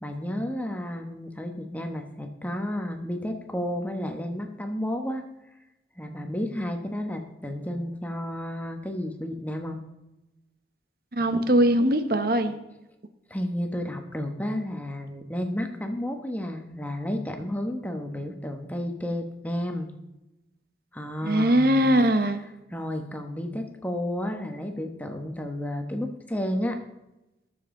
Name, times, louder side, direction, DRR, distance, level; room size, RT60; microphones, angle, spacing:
voice 1, 0.0-5.2 6.0-9.8 13.3-19.9 20.9-22.0 22.7-26.8, left 1 dB, 10° left, 4 dB, 1.1 m, -32 dB
voice 2, 11.2-12.5 21.2-22.4, right 1 dB, 55° right, 8 dB, 1.0 m, -21 dB
20.5 x 7.2 x 3.8 m, 0.97 s
head